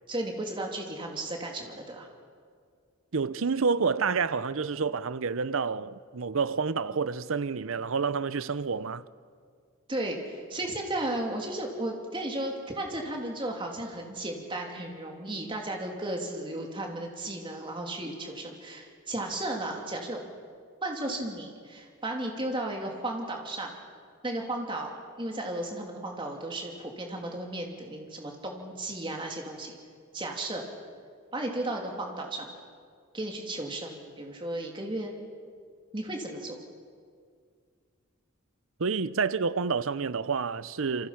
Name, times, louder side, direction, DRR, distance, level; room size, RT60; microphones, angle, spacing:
voice 1, 0.1-2.1 9.9-20.2 20.8-23.7 24.2-29.8 30.1-30.6 31.3-32.5 33.1-35.1 35.9-36.6, right 1 dB, 25° right, 3.0 m, -34 dB
voice 2, 3.1-9.0 38.8-41.1, right 5 dB, 75° right, 0.7 m, -29 dB
28.0 x 24.5 x 5.9 m
head